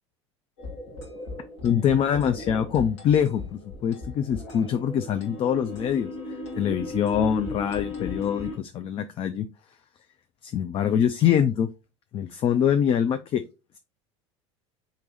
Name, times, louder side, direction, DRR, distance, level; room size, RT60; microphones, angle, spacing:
sound 1, 0.6-8.6, left 2 dB, 80° left, 2.2 m, -37 dB
voice 1, 1.6-6.1 6.6-9.5 10.4-11.7 12.1-13.4, left 8 dB, 35° left, 10 dB, 0.4 m, -24 dB
3.8 x 3.4 x 3.9 m, 0.29 s
hypercardioid pair, 80°, 15 cm